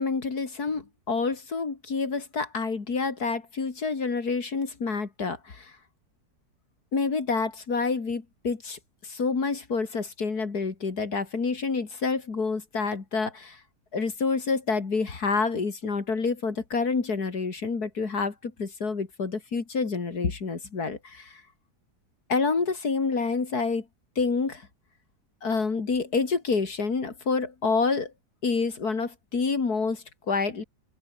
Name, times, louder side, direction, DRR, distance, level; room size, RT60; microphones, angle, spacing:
voice 1, 0.0-5.7 6.9-13.6 13.9-21.4 22.3-23.8 24.2-24.7 25.4-28.1 28.4-30.6, left 4 dB, 70° left, 3.2 m, -28 dB
open air
omnidirectional pair, 1.7 m